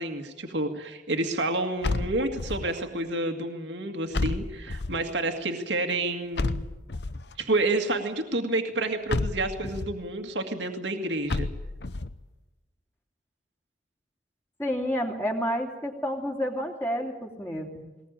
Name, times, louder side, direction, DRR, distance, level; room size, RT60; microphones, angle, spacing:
voice 1, 0.0-6.7 7.4-11.5, right 2 dB, 75° right, 5 dB, 2.1 m, -29 dB
sound 1, 1.8-2.8 4.1-5.1 6.4-7.3 9.1-10.0 11.3-12.1, left 3 dB, 65° left, 0.8 m, -30 dB
voice 2, 14.6-17.8, equal, 15° left, 0 dB, 2.9 m, -30 dB
20.5 x 20.0 x 9.1 m, 1.1 s
head